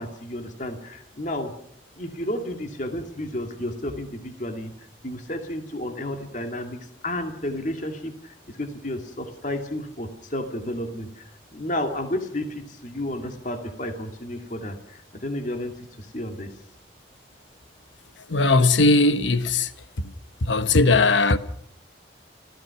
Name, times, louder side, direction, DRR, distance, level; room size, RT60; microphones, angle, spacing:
voice 1, 0.0-1.5 2.0-4.7 5.0-16.5, left 1 dB, 40° left, 2.4 m, -32 dB
voice 2, 18.3-19.7 20.4-21.4, left 3 dB, 90° left, 1.2 m, -18 dB
30.0 x 15.0 x 5.9 m
head